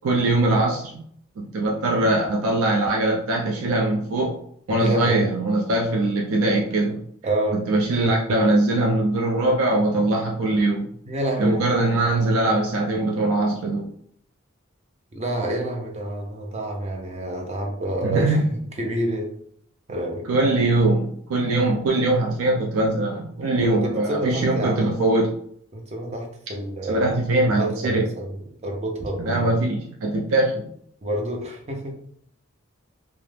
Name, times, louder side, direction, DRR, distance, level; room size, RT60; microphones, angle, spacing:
voice 1, 0.0-1.1 1.4-4.4 4.7-7.0 7.5-10.9 11.4-13.9 18.0-18.5 20.3-25.3 26.9-28.1 29.2-30.7, right 2 dB, 85° right, -1 dB, 0.4 m, -22 dB
voice 2, 4.8-5.2 7.2-7.6 11.1-11.6 15.1-19.3 19.9-20.3 23.6-24.9 25.7-27.1 27.5-29.5 31.0-31.9, right 1 dB, 30° right, 1 dB, 0.5 m, -28 dB
2.3 x 2.0 x 3.2 m, 0.66 s
head